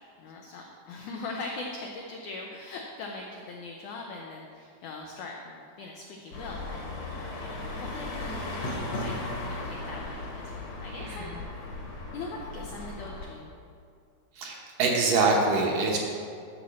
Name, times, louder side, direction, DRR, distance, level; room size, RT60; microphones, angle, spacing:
voice 1, 0.2-6.8 7.4-11.3 12.1-13.5, left 3 dB, 90° left, 0 dB, 1.7 m, -41 dB
sound 1, 6.3-13.3, left 2 dB, 60° left, 1.7 m, -36 dB
voice 2, 11.0-11.3 14.4-16.0, right 3 dB, 70° right, -1 dB, 2.2 m, -25 dB
11.5 x 4.2 x 7.0 m, 2.3 s
omnidirectional pair, 4.5 m